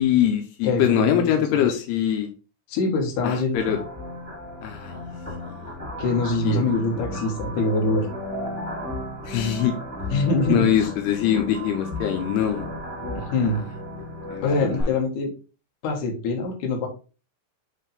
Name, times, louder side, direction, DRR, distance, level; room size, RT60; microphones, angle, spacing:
voice 1, 0.0-2.3 3.2-3.8 4.6-4.9 5.5-5.6 6.4-6.7 9.3-9.8 10.5-12.6 14.3-15.0, left 10 dB, 85° left, 5 dB, 2.8 m, -23 dB
voice 2, 0.6-1.6 2.7-3.6 6.0-8.1 10.1-10.9 13.1-13.6 14.4-15.3 15.8-16.9, left 2 dB, 60° left, 1 dB, 2.7 m, -24 dB
sound 1, 3.5-14.8, left 1 dB, 5° right, 1.8 m, -34 dB
8.1 x 3.6 x 3.4 m, 0.33 s
omnidirectional pair, 4.7 m